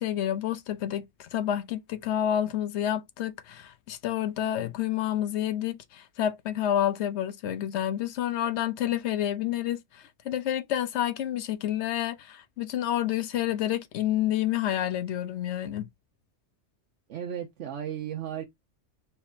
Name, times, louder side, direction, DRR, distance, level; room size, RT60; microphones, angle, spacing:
voice 1, 0.0-15.9, left 11 dB, 75° left, 0.8 m, -29 dB
voice 2, 17.1-18.4, right 9 dB, 85° right, 1.1 m, -35 dB
4.6 x 3.4 x 2.5 m
omnidirectional pair, 1.2 m